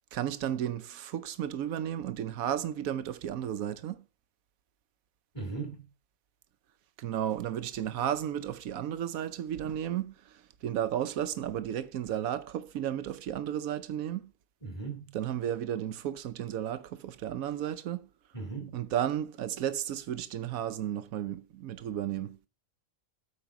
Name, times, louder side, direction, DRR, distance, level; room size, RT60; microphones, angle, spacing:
voice 1, 0.1-4.1 7.0-14.3 15.1-18.1 18.7-22.4, right 10 dB, 90° right, 1.2 m, -33 dB
voice 2, 5.3-5.9 14.6-15.1 18.3-18.8, right 4 dB, 20° left, 2.5 m, -38 dB
8.6 x 5.0 x 6.0 m
omnidirectional pair, 1.4 m